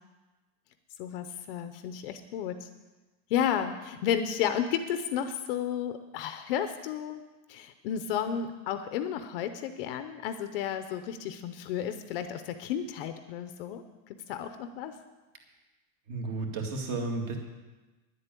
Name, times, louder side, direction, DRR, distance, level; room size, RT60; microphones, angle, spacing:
voice 1, 1.0-2.7 3.3-7.2 7.5-13.8 14.3-14.9, left 9 dB, 40° left, 9 dB, 0.6 m, -32 dB
voice 2, 16.1-17.4, right 3 dB, 40° right, 2 dB, 2.2 m, -33 dB
10.5 x 8.1 x 9.0 m, 1.2 s
supercardioid pair, 175°, 43 cm